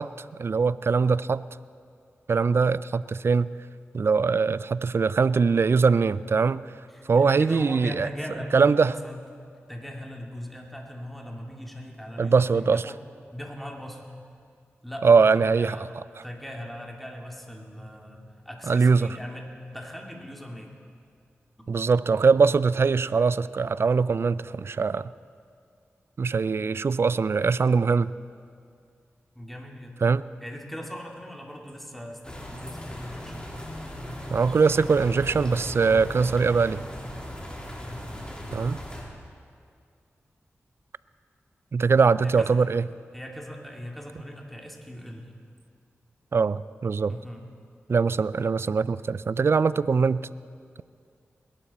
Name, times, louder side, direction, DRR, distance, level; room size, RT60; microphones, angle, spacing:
voice 1, 0.0-1.4 2.3-3.5 3.9-6.7 7.1-8.1 8.5-8.9 12.2-12.9 15.0-15.9 18.7-19.1 21.7-25.1 26.2-28.1 30.0-30.2 34.3-36.8 38.5-38.8 41.7-42.8 46.3-47.2 47.9-50.2, right 5 dB, 55° right, 18 dB, 0.4 m, -22 dB
voice 2, 6.9-9.2 9.7-13.0 13.3-14.1 14.8-15.9 16.2-20.7 29.4-30.0 30.4-33.5 37.9-38.3 42.2-42.5 43.1-45.3 47.1-47.5, equal, ahead, 0 dB, 2.4 m, -39 dB
sound 1, 32.2-39.0, equal, 20° left, 3.0 m, -37 dB
21.5 x 11.5 x 4.2 m, 2.3 s
cardioid pair, 40°, 5 cm